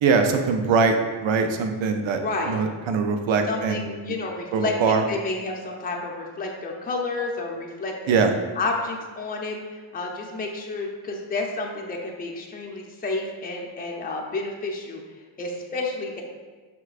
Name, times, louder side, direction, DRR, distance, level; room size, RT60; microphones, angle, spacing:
voice 1, 0.0-2.2 2.5-3.9 4.5-5.0 8.1-8.3, right 5 dB, 70° right, 6 dB, 0.5 m, -22 dB
voice 2, 2.2-2.6 3.5-8.2 8.6-15.0 15.4-16.2, left 3 dB, 20° left, 0 dB, 0.5 m, -30 dB
5.7 x 2.2 x 2.4 m, 1.4 s
cardioid pair, 50°, 48 cm